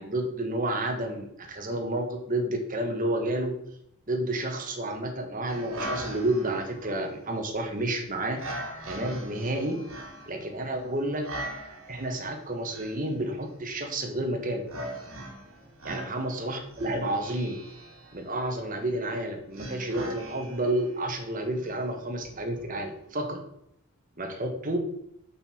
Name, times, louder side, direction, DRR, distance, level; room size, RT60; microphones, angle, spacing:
voice 1, 0.0-3.6 4.1-8.4 8.8-9.8 10.3-11.3 11.9-14.6 15.8-17.6 18.1-23.4 24.2-24.8, right 1 dB, 40° right, 3 dB, 1.3 m, -30 dB
sound 1, 5.5-23.1, right 1 dB, 80° right, 2.0 m, -41 dB
6.1 x 5.5 x 4.3 m, 0.76 s
head